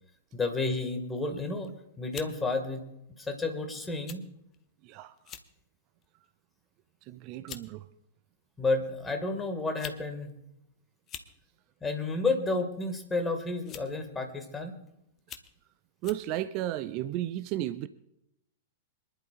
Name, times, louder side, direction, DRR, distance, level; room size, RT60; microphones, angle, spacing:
voice 1, 0.3-1.7 2.0-2.9 3.2-4.2 8.6-10.3 11.8-14.7, left 3 dB, 10° left, 5 dB, 1.9 m, -31 dB
sound 1, 1.4-1.7 2.1-2.3 3.2-3.4 4.1-4.2 4.5-4.6 5.2-5.5 6.0-6.3 7.1-7.2 7.5-7.7 8.7-8.8 9.6-10.0 10.3-10.4 11.0-11.3 12.6-12.8 13.6-14.0 14.6-14.7 15.2-15.5 16.0-16.3, left 9 dB, 30° left, 1.0 m, -44 dB
voice 2, 4.8-5.1 7.1-7.9 16.0-17.9, right 14 dB, 40° right, 14 dB, 0.5 m, -33 dB
26.5 x 11.0 x 2.5 m, 0.83 s
figure-of-eight pair, 100°, 0 cm